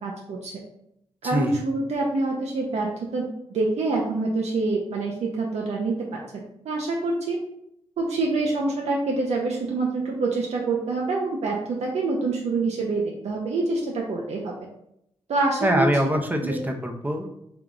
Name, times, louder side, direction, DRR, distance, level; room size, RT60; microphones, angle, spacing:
voice 1, 0.0-0.5 1.2-6.2 6.6-7.4 8.0-14.5 15.3-15.9 16.4-16.6, right 3 dB, 80° right, -1 dB, 0.6 m, -26 dB
voice 2, 15.6-17.3, equal, 15° right, 3 dB, 0.6 m, -24 dB
3.6 x 2.3 x 3.7 m, 0.76 s
cardioid pair, 75°, 11 cm